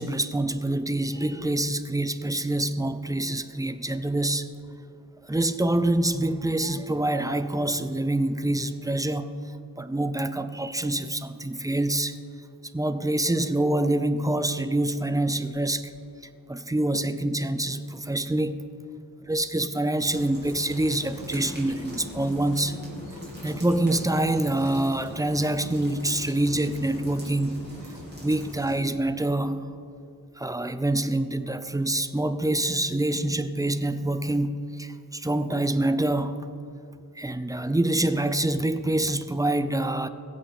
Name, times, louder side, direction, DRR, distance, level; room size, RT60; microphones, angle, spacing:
voice 1, 0.0-4.5 5.3-9.3 9.8-12.2 12.7-15.9 16.5-18.6 19.2-22.8 23.4-27.6 28.2-29.7 30.4-36.4 37.2-40.1, right 1 dB, 10° right, 10 dB, 0.5 m, -26 dB
sound 1, 20.0-28.7, right 1 dB, 30° right, 3.3 m, -44 dB
sound 2, 20.4-29.8, left 2 dB, 55° left, 1.3 m, -43 dB
21.0 x 7.8 x 4.2 m, 2.6 s
wide cardioid pair, 110°, 36 cm